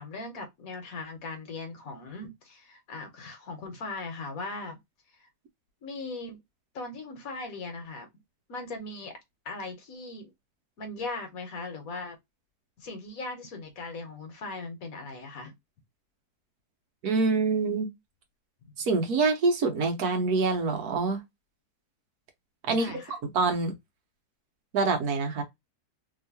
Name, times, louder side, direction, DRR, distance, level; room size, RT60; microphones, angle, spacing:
voice 1, 0.0-4.8 5.2-5.3 5.8-6.4 6.7-8.1 8.5-9.2 9.4-10.3 10.8-12.2 12.8-15.5 22.7-23.2, left 3 dB, 65° left, 1.4 m, -39 dB
voice 2, 17.0-17.9 18.8-21.2 22.7-23.7 24.7-25.4, right 4 dB, 70° right, 1.4 m, -26 dB
3.2 x 2.9 x 2.8 m
omnidirectional pair, 1.7 m